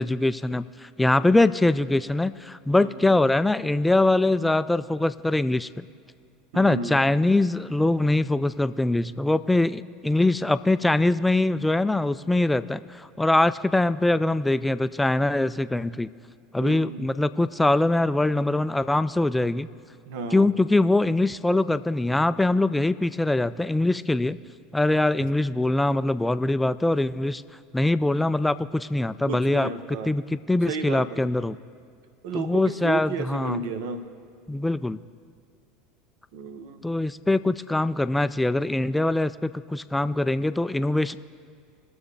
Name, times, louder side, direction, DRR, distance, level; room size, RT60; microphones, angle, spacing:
voice 1, 0.0-5.8 6.5-16.1 16.5-19.7 20.3-24.4 24.7-27.4 27.7-31.6 32.3-33.6 34.5-35.0 36.8-41.1, left 2 dB, 10° left, 14 dB, 0.3 m, -23 dB
voice 2, 2.8-3.1 6.5-7.0 16.6-17.0 20.1-20.5 29.3-30.1 30.7-31.3 32.2-34.1 36.3-36.8, right 4 dB, 60° right, 10 dB, 0.9 m, -33 dB
20.5 x 7.0 x 3.4 m, 2.1 s
figure-of-eight pair, 75°, 0 cm